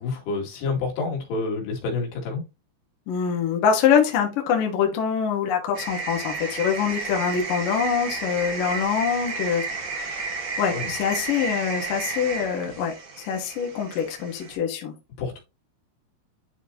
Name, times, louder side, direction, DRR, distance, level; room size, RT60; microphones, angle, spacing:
voice 1, 0.0-2.4 10.6-10.9 15.2-15.4, left 4 dB, 80° left, 4.3 m, -28 dB
voice 2, 3.1-9.6 9.9-14.9, left 7 dB, 60° left, 2.7 m, -24 dB
sound 1, 5.7-14.6, right 4 dB, 60° right, 1.3 m, -32 dB
11.5 x 4.0 x 2.8 m
omnidirectional pair, 4.8 m